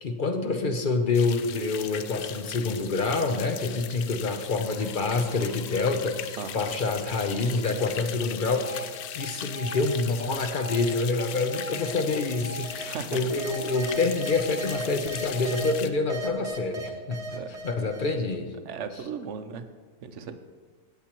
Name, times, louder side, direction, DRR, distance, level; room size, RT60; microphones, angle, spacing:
voice 1, 0.0-17.2 17.6-18.5, left 3 dB, 45° left, 6 dB, 0.7 m, -27 dB
sound 1, 1.1-15.9, left 10 dB, 80° left, 1.1 m, -39 dB
sound 2, 4.7-7.5 7.9-12.8 13.3-15.7 16.1-18.4, right 1 dB, 30° right, 0.9 m, -39 dB
voice 2, 6.4-6.7 12.8-13.2 17.3-17.5 18.7-19.7 20.0-20.3, right 6 dB, 60° right, 9 dB, 0.9 m, -36 dB
17.0 x 7.9 x 3.0 m, 1.4 s
omnidirectional pair, 1.6 m